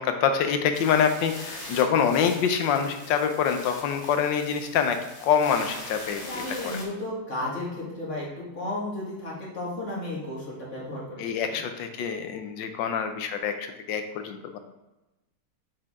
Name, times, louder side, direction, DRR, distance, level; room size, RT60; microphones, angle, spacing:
voice 1, 0.0-6.3 6.6-6.8 11.2-14.6, left 7 dB, 85° left, 7 dB, 1.4 m, -25 dB
sound 1, 0.7-6.8, left 1 dB, 20° left, 1.2 m, -42 dB
voice 2, 6.2-11.6, left 1 dB, 40° left, -5 dB, 2.2 m, -34 dB
7.3 x 4.6 x 3.6 m, 1.0 s
omnidirectional pair, 1.9 m